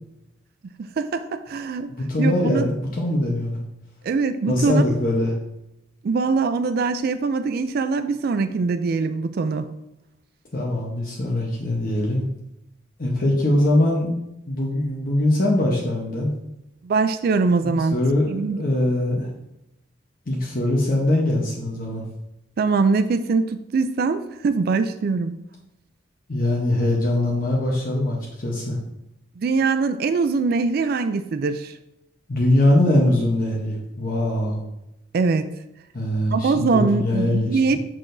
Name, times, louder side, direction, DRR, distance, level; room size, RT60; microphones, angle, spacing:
voice 1, 1.0-1.9 2.2-2.7 4.0-4.8 6.0-9.6 16.8-18.0 18.3-18.6 22.6-25.4 29.4-31.7 35.1-35.5 36.3-37.8, right 4 dB, 55° right, 10 dB, 0.3 m, -22 dB
voice 2, 1.9-3.6 4.5-5.3 10.5-12.2 13.0-14.1 14.5-16.3 17.6-19.3 20.3-22.0 26.3-28.8 32.3-34.6 35.9-37.6, left 1 dB, 50° left, -2 dB, 0.9 m, -22 dB
6.5 x 6.0 x 2.6 m, 0.87 s
head